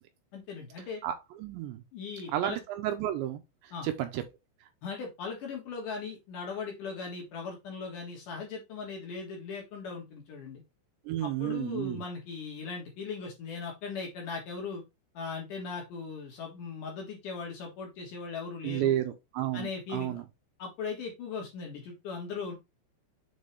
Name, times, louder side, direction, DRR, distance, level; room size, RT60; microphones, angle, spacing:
voice 1, 0.3-1.0 1.9-2.6 3.7-3.9 4.8-10.6 11.2-14.8 15.1-18.9 19.5-20.2 20.6-22.5, left 5 dB, 60° left, 2.3 m, -38 dB
voice 2, 1.0-1.8 2.3-4.3 11.1-12.0 18.6-20.3, right 12 dB, 80° right, 2.7 m, -32 dB
7.4 x 4.0 x 3.2 m
omnidirectional pair, 5.8 m